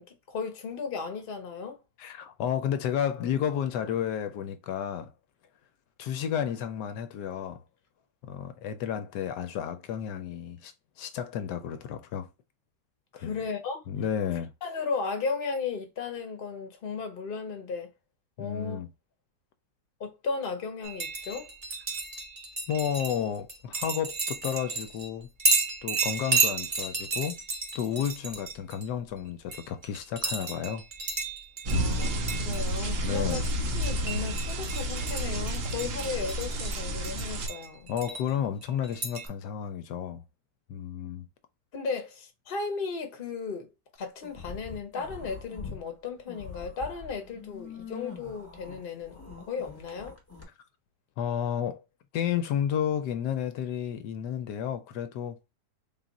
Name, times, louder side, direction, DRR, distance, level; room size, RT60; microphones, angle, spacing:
voice 1, 0.0-1.8 13.1-13.8 14.6-17.9 18.4-18.8 20.0-21.5 31.7-32.1 32.4-33.4 33.7-37.9 41.7-43.7 44.0-49.2 49.5-50.2, left 5 dB, 40° left, 0.8 m, -35 dB
voice 2, 2.0-5.1 6.0-7.6 8.2-12.3 13.2-13.4 13.9-14.5 18.4-18.9 22.7-25.3 25.8-27.4 27.7-30.8 31.7-31.9 33.0-33.4 37.9-40.2 40.7-41.3 51.2-51.8 52.1-55.5, left 9 dB, 75° left, 1.1 m, -32 dB
sound 1, 20.8-25.1 25.4-28.8 29.5-38.3 38.6-39.3, right 3 dB, 40° right, 0.7 m, -32 dB
sound 2, 31.6-37.5, equal, 75° right, 0.5 m, -30 dB
sound 3, 44.2-45.8 46.2-50.4, left 5 dB, 15° left, 0.6 m, -43 dB
3.8 x 2.4 x 4.0 m
omnidirectional pair, 1.9 m